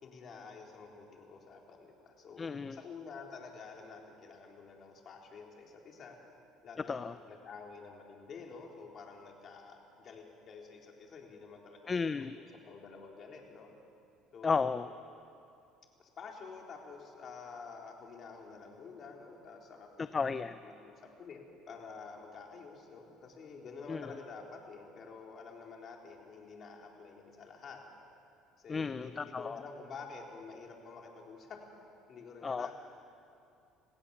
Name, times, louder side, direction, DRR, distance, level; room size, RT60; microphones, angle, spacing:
voice 1, 0.0-6.2 6.6-13.7 14.3-14.7 16.0-19.9 20.6-21.4 21.7-27.8 28.6-31.6 32.1-32.7, left 5 dB, 45° left, 0 dB, 3.9 m, -49 dB
voice 2, 2.4-2.8 6.9-7.1 11.9-12.4 14.4-14.9 20.1-20.6 23.9-24.0 28.7-29.6 32.4-32.7, left 5 dB, 25° left, 12 dB, 0.5 m, -33 dB
27.5 x 17.0 x 7.2 m, 2.6 s
cardioid pair, 105°, 0 cm